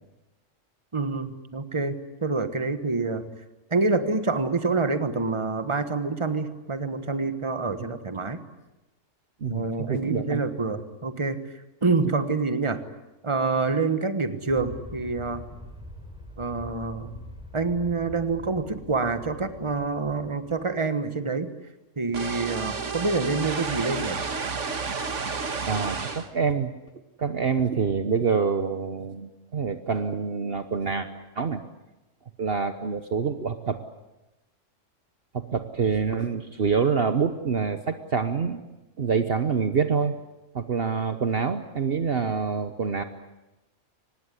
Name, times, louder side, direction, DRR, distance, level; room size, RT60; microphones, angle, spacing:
voice 1, 0.9-2.0 2.2-3.3 3.7-8.4 9.5-11.4 11.8-12.8 13.2-15.5 16.4-17.2 17.5-21.5 22.0-24.2, right 3 dB, 25° right, 10 dB, 1.5 m, -27 dB
voice 2, 9.4-10.4 25.6-26.7 27.2-31.1 31.4-31.6 32.4-33.8 35.3-38.6 39.0-40.2 40.5-43.0, right 5 dB, 50° right, 9 dB, 1.2 m, -26 dB
Aircraft, 14.5-20.8, equal, 5° right, 3.8 m, -44 dB
sound 1, 22.1-26.3, right 4 dB, 70° right, 2.0 m, -31 dB
24.5 x 20.0 x 10.0 m, 1.0 s
omnidirectional pair, 1.3 m